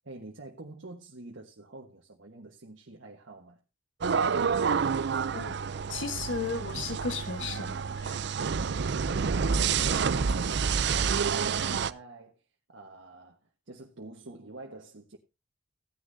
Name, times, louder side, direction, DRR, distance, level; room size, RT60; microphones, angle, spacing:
voice 1, 0.0-3.6 9.3-12.4 12.7-13.4 13.7-15.2, right 2 dB, 85° right, 1.4 m, -46 dB
sound 1, 4.0-11.9, right 6 dB, 65° right, 0.5 m, -28 dB
voice 2, 5.9-8.3 9.6-10.0 11.7-11.8, left 4 dB, 80° left, 1.4 m, -36 dB
16.0 x 9.9 x 2.7 m
head